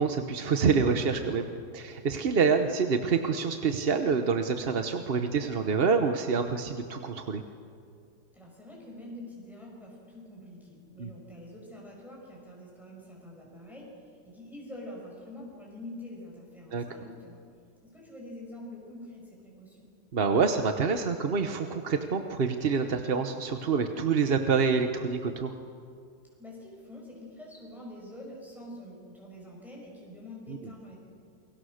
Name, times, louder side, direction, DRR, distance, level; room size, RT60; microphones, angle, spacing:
voice 1, 0.0-1.5 1.7-7.4 11.0-11.1 16.7-16.8 20.1-25.5 30.5-30.6, right 5 dB, 40° right, 6 dB, 1.0 m, -27 dB
voice 2, 8.3-17.4 17.8-19.9 26.4-31.0, left 1 dB, ahead, -3 dB, 5.7 m, -46 dB
28.5 x 22.5 x 6.5 m, 2.3 s
omnidirectional pair, 1.8 m